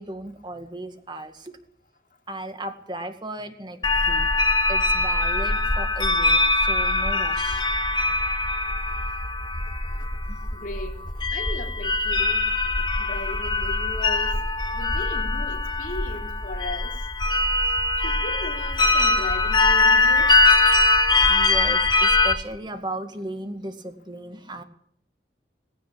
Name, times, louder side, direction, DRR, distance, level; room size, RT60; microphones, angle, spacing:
voice 1, 0.0-1.6 2.3-4.3 4.7-7.7 10.3-10.4 21.3-24.6, right 1 dB, 25° right, 2.0 m, -36 dB
sound 1, 3.8-22.3, left 3 dB, 25° left, 2.1 m, -22 dB
voice 2, 10.5-10.9 11.3-12.5 13.0-14.4 14.7-16.9 18.0-20.4, left 1 dB, 50° left, 3.4 m, -37 dB
18.0 x 17.0 x 8.6 m
head